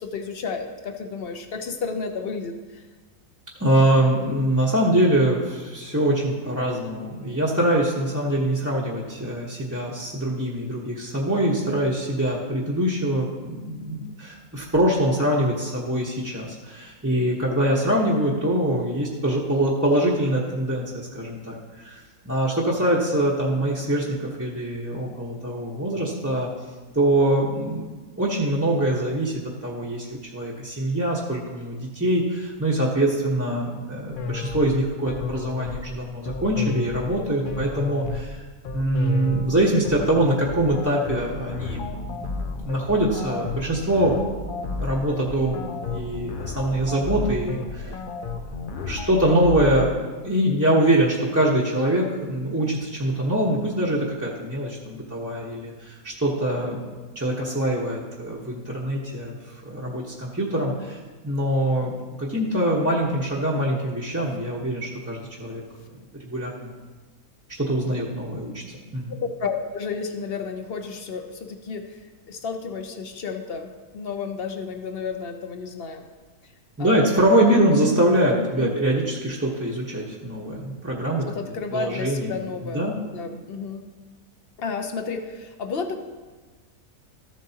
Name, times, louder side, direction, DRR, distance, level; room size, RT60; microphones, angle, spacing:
voice 1, 0.0-2.8 69.1-72.0 72.3-73.7 73.9-76.0 76.8-77.2 77.5-77.6 78.4-78.7 81.2-83.9 84.6-86.0, left 5 dB, 50° left, 6 dB, 0.8 m, -32 dB
voice 2, 3.6-26.5 26.9-27.8 28.2-38.4 38.7-44.2 44.8-48.0 48.8-49.9 50.2-56.8 57.1-61.0 61.2-61.9 62.2-65.6 66.2-66.7 67.6-68.6 68.9-69.1 76.8-81.3 81.7-83.0, right 1 dB, 10° right, -5 dB, 0.8 m, -24 dB
sound 1, 34.1-50.0, left 4 dB, 85° left, 0.4 m, -32 dB
14.0 x 7.4 x 2.9 m, 1.3 s
omnidirectional pair, 1.6 m